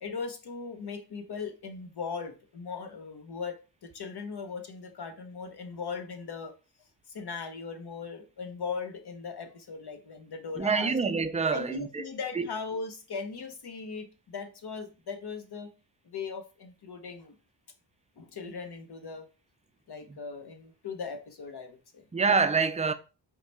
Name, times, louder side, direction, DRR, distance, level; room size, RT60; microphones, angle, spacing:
voice 1, 0.0-6.5 7.1-11.0 11.5-15.7 16.1-17.3 18.2-19.3 19.9-22.0, left 5 dB, 60° left, 0.9 m, -39 dB
voice 2, 10.6-12.1 12.3-12.5 22.1-22.9, right 5 dB, 15° right, 0.4 m, -26 dB
4.7 x 2.3 x 4.0 m
cardioid pair, 65°, 44 cm